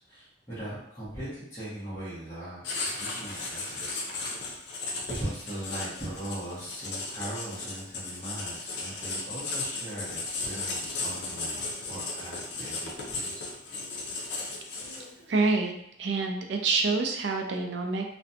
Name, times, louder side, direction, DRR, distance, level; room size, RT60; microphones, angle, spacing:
voice 1, 0.0-4.6 5.1-13.5, right 1 dB, 15° left, -12 dB, 0.8 m, -40 dB
Writing, 2.6-15.2, left 3 dB, 70° left, 0.5 m, -35 dB
voice 2, 15.3-15.7 16.0-18.1, right 3 dB, 75° right, 3 dB, 0.4 m, -27 dB
2.4 x 2.1 x 2.7 m, 0.73 s
head